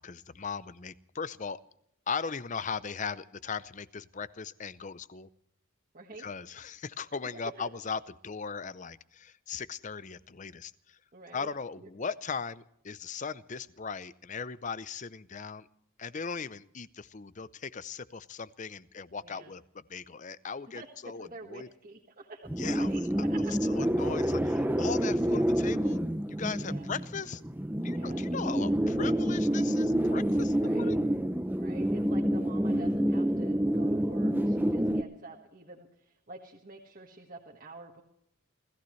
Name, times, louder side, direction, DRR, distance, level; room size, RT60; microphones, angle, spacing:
voice 1, 0.0-1.6 2.1-5.3 6.2-11.0 11.3-15.7 16.0-21.7 22.6-23.0 23.5-26.0 26.3-27.4 27.8-31.0, left 5 dB, 35° left, 16 dB, 0.6 m, -38 dB
voice 2, 5.9-6.3 7.6-7.7 11.1-11.5 11.8-11.9 19.2-19.5 20.7-23.5 26.6-26.9 27.9-28.3 30.6-31.0 31.6-38.0, right 2 dB, 40° right, -2 dB, 1.6 m, -48 dB
sound 1, 22.5-35.0, equal, 10° right, 0.6 m, -28 dB
30.0 x 14.5 x 3.2 m, 0.74 s
head